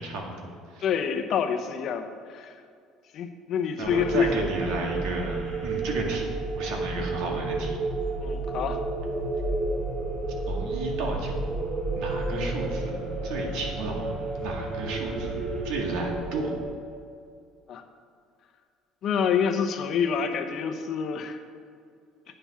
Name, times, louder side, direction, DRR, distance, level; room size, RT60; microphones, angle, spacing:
voice 1, 0.0-0.8 3.8-7.8 10.5-11.4 11.9-13.0 13.2-16.5, right 2 dB, 75° right, 1 dB, 1.9 m, -33 dB
voice 2, 0.8-2.5 3.1-4.3 8.2-8.8 17.7-17.8 19.0-21.4, left 7 dB, 45° left, 7 dB, 0.8 m, -27 dB
sound 1, 3.8-16.6, right 2 dB, 50° right, 2.8 m, -31 dB
8.8 x 7.1 x 5.7 m, 2.2 s
cardioid pair, 150°, 0 cm